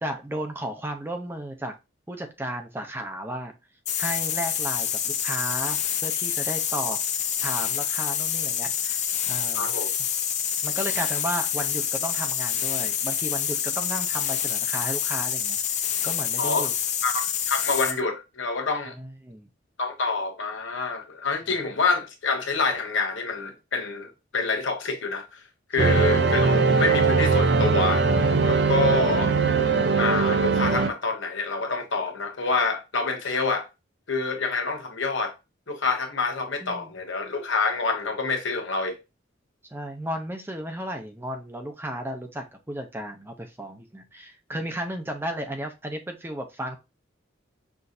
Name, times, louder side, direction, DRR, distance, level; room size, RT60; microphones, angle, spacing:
voice 1, 0.0-1.7 2.1-3.5 4.0-7.0 7.4-9.0 9.3-9.7 10.6-15.6 16.0-16.7 18.9-19.5 25.7-26.0 36.6-36.9 39.7-46.8, right 1 dB, 10° right, 0.5 m, -34 dB
sound 1, 3.9-18.0, left 9 dB, 40° left, 0.5 m, -27 dB
voice 2, 9.5-9.9 16.4-16.7 17.0-18.9 19.8-25.4 25.7-28.1 28.4-29.3 30.0-33.7 34.1-35.3 35.7-39.0, left 4 dB, 80° left, 1.0 m, -27 dB
sound 2, 25.8-30.9, right 4 dB, 60° right, 0.5 m, -21 dB
5.8 x 2.5 x 2.6 m
head